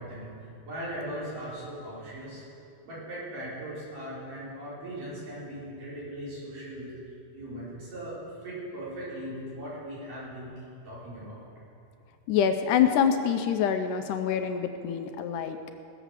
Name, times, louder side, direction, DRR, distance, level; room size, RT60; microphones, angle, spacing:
voice 1, 0.0-2.4 2.8-6.9 7.3-10.5 10.8-11.4, right 1 dB, 70° right, -8 dB, 5.9 m, -39 dB
voice 2, 12.3-15.7, left 8 dB, 75° left, 7 dB, 2.1 m, -26 dB
18.5 x 7.1 x 7.3 m, 2.5 s
omnidirectional pair, 3.9 m